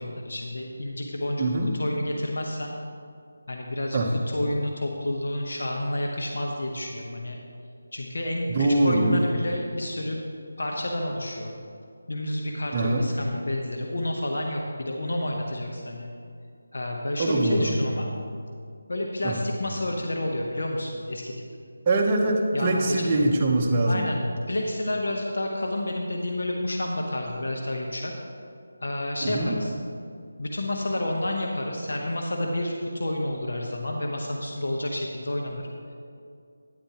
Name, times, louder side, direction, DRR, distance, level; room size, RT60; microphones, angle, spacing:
voice 1, 0.0-2.8 3.5-7.4 7.9-10.2 10.6-11.5 12.1-16.1 16.7-18.1 18.9-21.3 22.5-23.3 23.9-28.1 28.8-29.7 30.4-35.7, left 1 dB, 70° left, 1 dB, 0.9 m, -30 dB
voice 2, 1.4-1.7 3.9-4.1 8.5-9.2 12.7-13.1 17.2-17.8 19.2-19.3 21.9-24.0 29.3-29.5, right 2 dB, 25° right, -1 dB, 0.8 m, -23 dB
9.5 x 8.9 x 2.9 m, 2.4 s
figure-of-eight pair, 165°, 0 cm